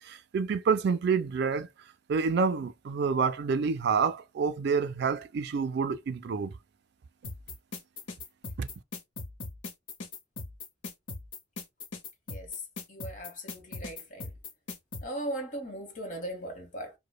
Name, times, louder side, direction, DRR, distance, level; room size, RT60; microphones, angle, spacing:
voice 1, 0.0-1.7 2.1-6.5 8.6-8.7, right 5 dB, 55° right, 0.4 m, -28 dB
sound 1, 7.2-15.0, left 4 dB, 65° left, 0.8 m, -39 dB
voice 2, 12.3-12.6 12.9-14.3 15.0-16.9, right 1 dB, 40° left, 1.2 m, -38 dB
4.9 x 2.2 x 2.2 m
head